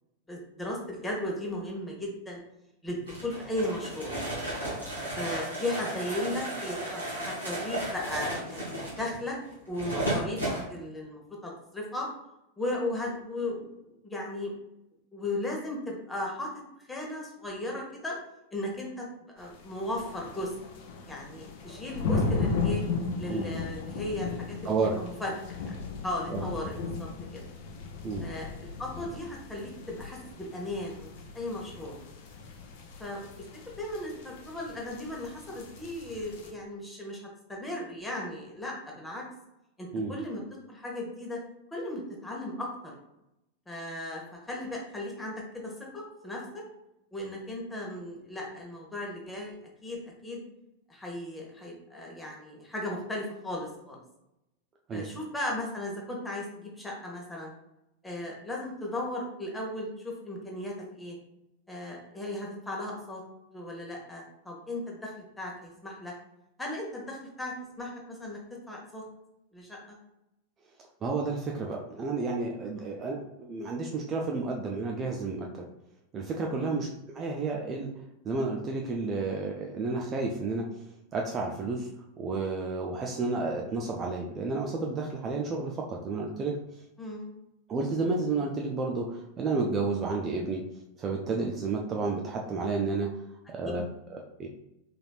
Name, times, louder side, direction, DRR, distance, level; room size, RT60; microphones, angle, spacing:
voice 1, 0.3-2.4 2.8-4.1 5.0-8.7 9.0-9.4 9.7-12.1 12.6-14.5 15.1-16.5 16.9-18.2 18.5-19.0 19.3-20.5 21.1-22.8 23.2-25.3 25.6-25.7 26.0-27.4 28.2-31.1 31.3-32.0 33.0-33.5 33.8-39.2 39.8-40.4 40.7-41.4 41.7-42.9 43.7-46.6 47.1-49.5 49.8-50.4 50.9-54.0 54.9-57.5 58.0-61.2 61.7-63.2 63.5-66.1 66.6-68.4 68.7-69.0 69.5-70.0 72.8-73.0 76.6-76.8 87.0-87.3, left 1 dB, 10° left, -2 dB, 1.1 m, -36 dB
sound 1, 3.1-10.6, right 1 dB, 85° right, 1.5 m, -34 dB
sound 2, 19.4-36.5, left 4 dB, 50° left, 0.5 m, -36 dB
voice 2, 24.6-25.0 26.3-26.5 28.0-28.3 39.9-40.1 54.9-55.1 71.0-75.6 76.1-76.9 77.1-77.9 78.2-80.7 81.1-81.9 82.2-86.6 87.7-90.6 91.0-93.1 93.5-94.5, right 3 dB, 25° right, 0 dB, 0.4 m, -31 dB
4.0 x 3.2 x 2.4 m, 0.86 s
figure-of-eight pair, 90°, 0 cm